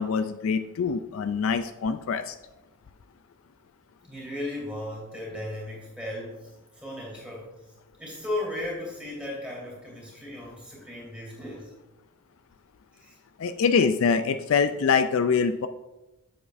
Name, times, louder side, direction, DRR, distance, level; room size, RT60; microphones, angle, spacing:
voice 1, 0.0-2.4 13.4-15.7, left 5 dB, 65° left, 10 dB, 0.4 m, -24 dB
voice 2, 4.0-7.5 8.0-11.7 12.9-13.2, left 1 dB, 5° right, -5 dB, 2.8 m, -36 dB
8.2 x 7.2 x 2.6 m, 1.0 s
head